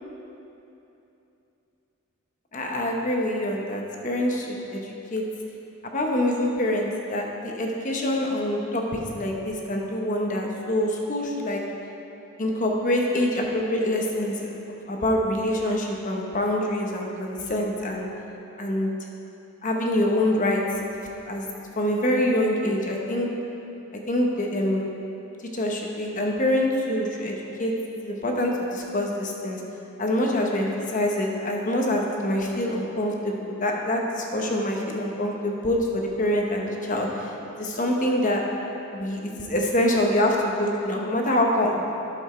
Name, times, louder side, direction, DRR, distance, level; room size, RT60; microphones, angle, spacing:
voice 1, 2.5-5.2 5.9-11.6 12.4-14.5 14.9-18.1 18.6-18.9 19.6-20.6 21.3-21.5 21.8-23.3 24.1-24.9 25.5-29.6 30.0-37.3 37.6-38.4 38.9-41.8, left 1 dB, 35° left, 0 dB, 1.0 m, -25 dB
11.0 x 7.2 x 4.4 m, 2.9 s
head